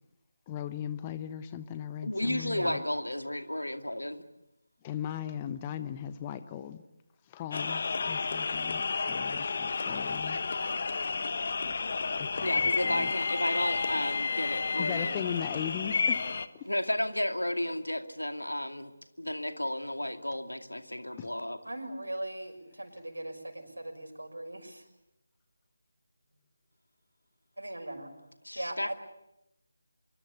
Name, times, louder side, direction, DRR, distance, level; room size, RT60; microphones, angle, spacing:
voice 1, 0.5-2.8 4.8-6.8 7.3-10.4 11.2-11.7 12.2-13.1 14.8-16.2 16.5-16.7 21.2-21.3, left 10 dB, 15° left, 0.9 m, -38 dB
voice 2, 2.0-4.2 12.4-15.2 16.6-18.9 19.2-21.6 28.4-28.9, left 1 dB, 80° left, 2.5 m, -33 dB
sound 1, 7.5-16.5, left 4 dB, 40° left, 1.2 m, -31 dB
voice 3, 21.6-24.8 27.6-28.1 28.5-28.9, right 1 dB, 75° right, 6.2 m, -39 dB
25.5 x 24.0 x 8.3 m
figure-of-eight pair, 160°, 0 cm